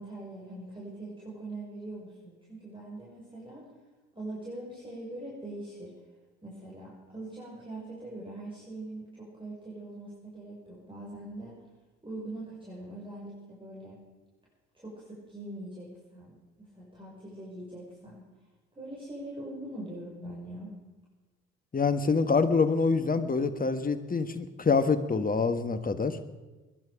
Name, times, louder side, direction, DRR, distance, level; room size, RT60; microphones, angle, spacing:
voice 1, 0.0-3.7 4.1-5.9 6.4-11.6 12.0-14.0 14.7-18.2 18.7-20.7, right 1 dB, 15° right, -5 dB, 5.9 m, -42 dB
voice 2, 21.7-26.2, left 4 dB, 25° left, 10 dB, 1.4 m, -26 dB
21.5 x 10.5 x 5.1 m, 1.2 s
hypercardioid pair, 55°, 36 cm